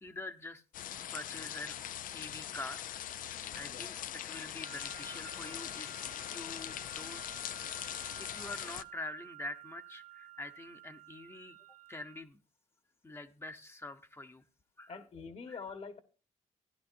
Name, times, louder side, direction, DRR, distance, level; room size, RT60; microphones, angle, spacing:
voice 1, 0.0-0.6 1.1-1.8 2.1-2.8 3.1-6.0 6.3-7.2 8.2-11.6 11.9-12.4 13.0-14.4 14.8-15.0 15.5-15.6, left 2 dB, 20° left, 0.8 m, -45 dB
sound 1, 0.7-8.8, left 11 dB, 85° left, 0.5 m, -42 dB
sound 2, 4.6-12.2, right 21 dB, 65° right, 1.8 m, -53 dB
voice 2, 14.9-16.0, left 5 dB, 50° left, 1.4 m, -45 dB
16.0 x 10.5 x 2.6 m
wide cardioid pair, 140°, 14 cm